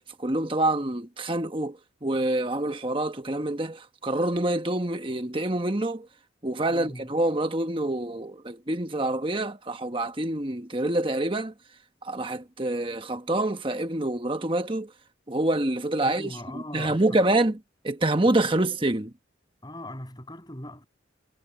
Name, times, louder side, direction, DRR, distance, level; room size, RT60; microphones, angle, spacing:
voice 1, 0.0-6.1 6.4-11.5 12.0-14.9 15.3-17.6 17.8-19.1, right 1 dB, 25° right, 1.3 m, -26 dB
voice 2, 6.7-7.1 16.0-17.4 18.5-18.7 19.6-20.8, left 1 dB, 20° left, 7.8 m, -40 dB
head